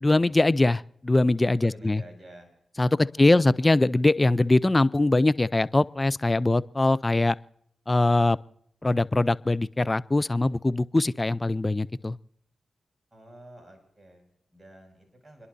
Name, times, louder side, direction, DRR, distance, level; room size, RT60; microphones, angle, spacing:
voice 1, 0.0-2.0 2.8-7.4 7.9-8.4 8.8-12.2, left 2 dB, 30° left, 0.5 m, -22 dB
voice 2, 1.6-2.5 3.0-3.4 13.1-15.5, right 1 dB, 20° right, 6.1 m, -50 dB
29.5 x 11.0 x 2.7 m
supercardioid pair, 40°, 0 cm